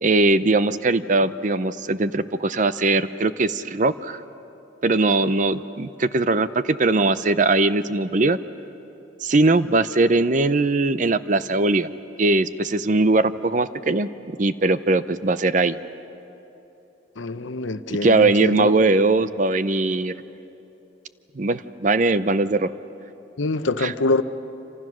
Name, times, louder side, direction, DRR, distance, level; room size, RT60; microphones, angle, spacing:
voice 1, 0.0-4.2 4.8-8.4 9.2-11.9 12.2-14.1 14.4-15.8 18.0-20.1 21.4-22.7 23.8-23.9, right 2 dB, 40° right, 13 dB, 0.6 m, -20 dB
voice 2, 17.2-18.9 23.4-24.2, left 2 dB, 85° left, 11 dB, 0.8 m, -25 dB
27.5 x 26.0 x 6.2 m, 2.9 s
head